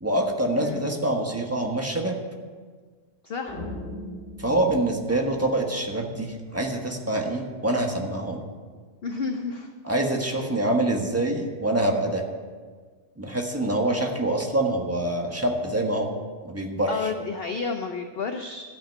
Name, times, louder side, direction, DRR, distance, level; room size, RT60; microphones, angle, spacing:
voice 1, 0.0-2.2 4.4-8.4 9.8-12.2 13.2-16.1 16.4-17.1, right 1 dB, 10° right, 1 dB, 1.3 m, -25 dB
voice 2, 3.2-3.6 9.0-9.7 16.9-18.6, left 5 dB, 50° left, 5 dB, 0.8 m, -31 dB
sound 1, 3.5-5.9, left 1 dB, 35° left, 2.7 m, -39 dB
12.5 x 5.9 x 9.4 m, 1.5 s
omnidirectional pair, 1.7 m